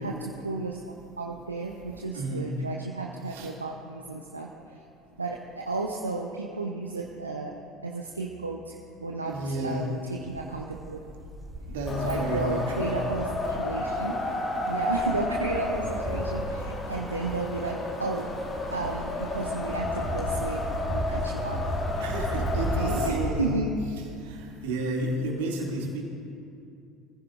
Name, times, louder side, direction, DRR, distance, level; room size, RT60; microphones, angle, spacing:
voice 1, 0.0-4.8 5.2-7.5 7.8-8.8 9.0-11.0 12.0-14.3 14.7-18.3 18.7-21.8 22.3-23.7, right 3 dB, 90° right, 1 dB, 0.7 m, -33 dB
voice 2, 1.9-2.5 3.3-3.5 9.3-9.9 11.7-12.9 22.0-23.5 24.2-26.0, right 1 dB, 70° right, -2 dB, 2.6 m, -32 dB
sound 1, 10.3-13.7 14.6-23.3, right 1 dB, 15° right, 3.0 m, -35 dB
Wind, 11.9-23.1, left 2 dB, 35° left, 2.3 m, -32 dB
23.5 x 15.0 x 2.6 m, 2.5 s
figure-of-eight pair, 65°, 0 cm